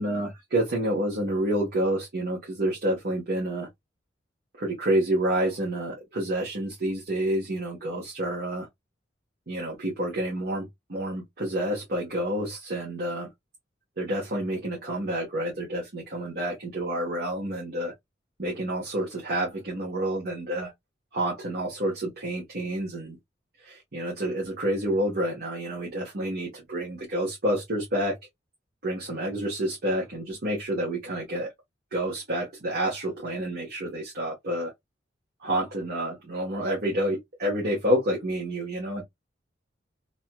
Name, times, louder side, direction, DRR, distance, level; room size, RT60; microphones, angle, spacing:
voice 1, 0.0-3.7 4.6-8.7 9.5-13.3 14.0-17.9 18.4-20.7 21.1-23.2 23.6-28.1 28.8-31.5 31.9-34.7 35.4-39.0, right 1 dB, 55° right, 1.2 m, -29 dB
3.0 x 3.0 x 2.3 m
head